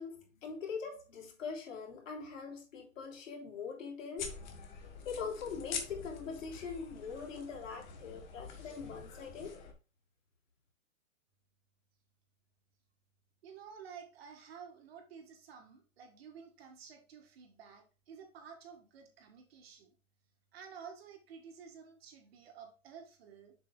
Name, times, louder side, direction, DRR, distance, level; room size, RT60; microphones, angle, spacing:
voice 1, 0.0-4.4 5.0-9.6, left 5 dB, 65° left, 3.4 m, -42 dB
sound 1, 4.2-9.7, left 6 dB, 30° left, 1.4 m, -45 dB
voice 2, 13.4-19.9 20.5-23.5, right 6 dB, 45° right, 2.0 m, -52 dB
7.5 x 7.1 x 2.2 m
hypercardioid pair, 165°, 42 cm